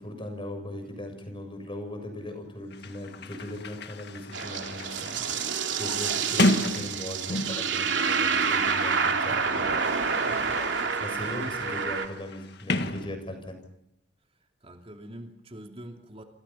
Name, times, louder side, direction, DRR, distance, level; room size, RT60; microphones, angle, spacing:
voice 1, 0.0-5.2 5.8-10.0 10.6-10.7 11.0-13.6, left 1 dB, 30° left, 6 dB, 7.2 m, -39 dB
Sliding door, 2.4-2.5 2.7-7.8 8.7-13.7, left 1 dB, 65° left, 1.9 m, -33 dB
sound 1, 4.3-12.1, right 5 dB, 90° right, 3.0 m, -28 dB
voice 2, 10.2-10.9 11.2-11.3 11.9-12.0 14.6-16.2, right 1 dB, 35° right, 3 dB, 2.9 m, -45 dB
29.0 x 27.0 x 5.9 m, 0.76 s
head